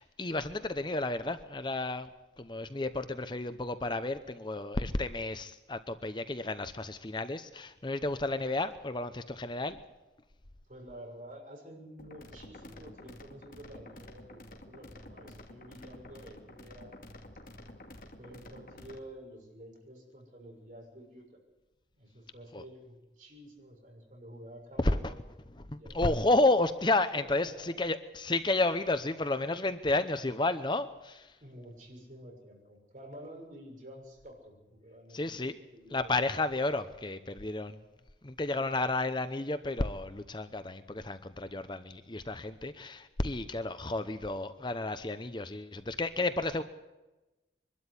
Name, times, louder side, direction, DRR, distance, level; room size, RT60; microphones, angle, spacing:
voice 1, 0.0-2.1 2.4-9.8 22.5-22.6 24.8-25.1 25.7-31.3 35.1-35.6 35.9-37.8 38.2-46.6, left 2 dB, 25° left, 11 dB, 0.8 m, -31 dB
voice 2, 10.7-16.9 18.2-21.3 21.9-25.2 25.5-26.2 27.1-27.7 31.4-35.5 35.7-36.1, equal, 45° right, 1 dB, 6.7 m, -50 dB
sound 1, 12.0-19.0, left 1 dB, 50° left, 2.4 m, -50 dB
23.5 x 12.5 x 9.9 m, 1.1 s
head